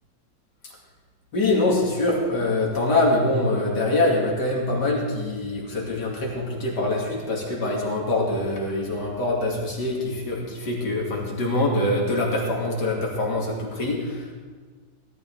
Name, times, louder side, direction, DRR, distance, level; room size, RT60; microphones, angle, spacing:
voice 1, 1.3-14.3, left 2 dB, 65° left, -2 dB, 3.1 m, -24 dB
17.0 x 13.0 x 3.5 m, 1.4 s
omnidirectional pair, 2.0 m